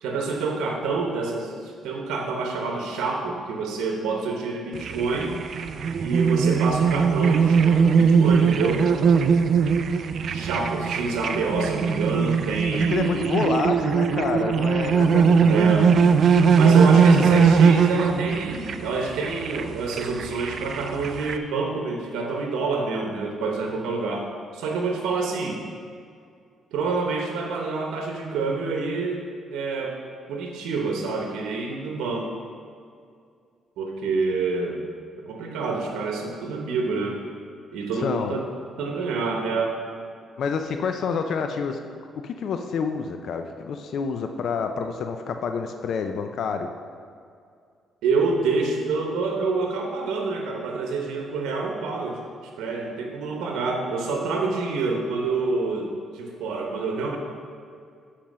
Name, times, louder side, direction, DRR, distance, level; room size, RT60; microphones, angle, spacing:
voice 1, 0.0-5.3 6.0-8.9 10.3-13.7 15.5-15.9 16.6-25.6 26.7-30.0 30.3-32.3 33.8-34.8 35.3-37.2 37.7-38.5 38.8-39.8 48.0-52.2 52.6-57.2, right 3 dB, 90° right, 1 dB, 0.9 m, -27 dB
sound 1, 4.7-21.4, right 6 dB, 60° right, 0.4 m, -20 dB
voice 2, 12.7-15.7 17.1-17.5 38.0-38.4 40.4-41.8 42.2-46.7, left 5 dB, 65° left, 6 dB, 0.4 m, -28 dB
7.4 x 4.3 x 6.1 m, 2.3 s
cardioid pair, 90°, 0 cm